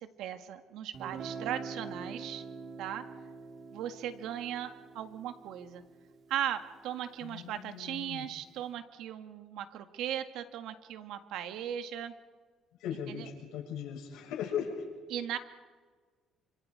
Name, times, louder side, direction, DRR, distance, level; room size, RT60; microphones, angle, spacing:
voice 1, 0.0-2.5 2.8-3.1 3.7-5.8 6.3-12.1 13.1-13.3 15.1-15.4, right 10 dB, 75° right, 8 dB, 1.7 m, -38 dB
Guitar, 0.9-6.7, right 4 dB, 50° right, 2.1 m, -45 dB
voice 2, 7.2-8.3 12.8-14.8, left 8 dB, 85° left, 0 dB, 6.6 m, -38 dB
29.0 x 27.0 x 4.8 m, 1.4 s
cardioid pair, 130°, 0 cm